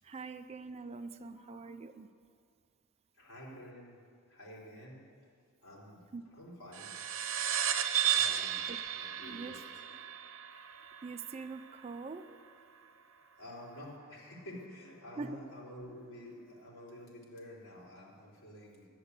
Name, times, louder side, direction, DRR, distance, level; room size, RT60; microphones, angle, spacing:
voice 1, 0.0-2.1 6.1-6.2 8.7-8.8 9.2-9.6 11.0-12.3 15.2-15.4, right 4 dB, 30° right, 10 dB, 0.4 m, -43 dB
voice 2, 0.8-1.6 3.2-4.0 4.3-5.0 5.6-6.0 6.3-6.9 8.1-9.9 13.4-18.9, left 1 dB, 80° left, -5 dB, 3.8 m, -50 dB
sound 1, 6.7-11.6, right 9 dB, 65° right, 0.9 m, -34 dB
10.5 x 9.6 x 8.1 m, 2.2 s
head